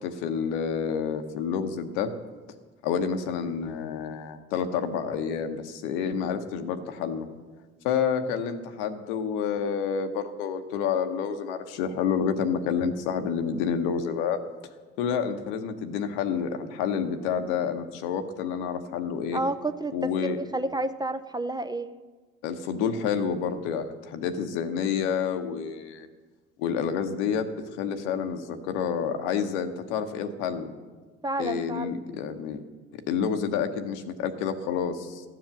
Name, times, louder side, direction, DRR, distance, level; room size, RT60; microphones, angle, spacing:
voice 1, 0.0-2.1 2.8-7.3 7.8-14.4 15.0-19.4 19.9-20.4 22.4-26.1 26.6-27.5 27.8-30.7 31.4-32.6 32.9-35.2, left 7 dB, 75° left, 8 dB, 0.9 m, -29 dB
voice 2, 19.3-21.9 31.2-32.0, right 2 dB, 10° right, 10 dB, 0.5 m, -30 dB
13.5 x 7.6 x 6.5 m, 1.4 s
hypercardioid pair, 50°, 35 cm